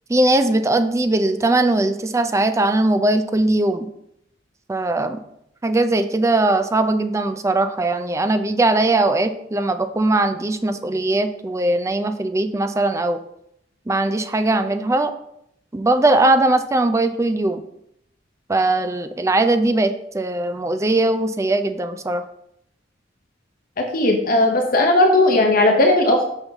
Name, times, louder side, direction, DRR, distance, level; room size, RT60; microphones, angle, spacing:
voice 1, 0.1-3.9 4.7-5.2 5.6-13.2 13.9-15.1 15.7-17.6 18.5-22.2, right 2 dB, 15° right, 9 dB, 0.4 m, -20 dB
voice 2, 23.8-26.2, left 2 dB, 50° left, 2 dB, 0.8 m, -16 dB
5.6 x 5.4 x 3.5 m, 0.75 s
head